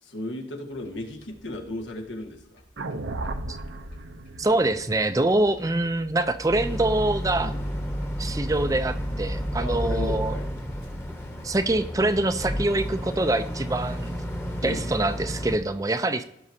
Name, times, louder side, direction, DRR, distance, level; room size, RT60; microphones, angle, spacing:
voice 1, 0.0-2.6 7.4-7.6 9.6-10.5 14.6-14.9, left 1 dB, 90° left, 3 dB, 1.6 m, -35 dB
sound 1, 0.7-15.6, equal, 65° left, 2.6 m, -42 dB
sound 2, 2.8-7.0, right 2 dB, 85° right, 0.7 m, -36 dB
voice 2, 4.4-7.5 8.2-10.4 11.4-14.1 14.6-16.2, right 2 dB, 20° right, 10 dB, 0.4 m, -25 dB
Boat Water vehicle, 6.5-15.6, equal, 15° left, 1.0 m, -32 dB
16.0 x 6.0 x 2.7 m, 0.80 s
head